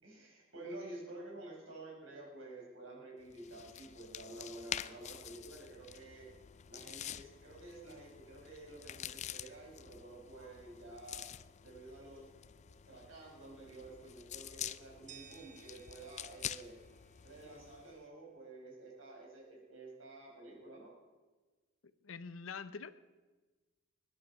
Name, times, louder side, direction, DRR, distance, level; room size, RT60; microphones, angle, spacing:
voice 1, 0.0-6.3 6.7-11.3 11.6-12.3 12.9-16.7 17.2-20.9, right 2 dB, 80° right, -3 dB, 5.2 m, -50 dB
sound 1, 3.3-18.0, left 10 dB, 35° left, 0.4 m, -47 dB
sound 2, 15.1-18.0, right 9 dB, 40° right, 0.7 m, -59 dB
voice 2, 22.0-22.9, left 5 dB, 90° left, 13 dB, 0.7 m, -44 dB
21.0 x 10.5 x 4.8 m, 1.3 s
head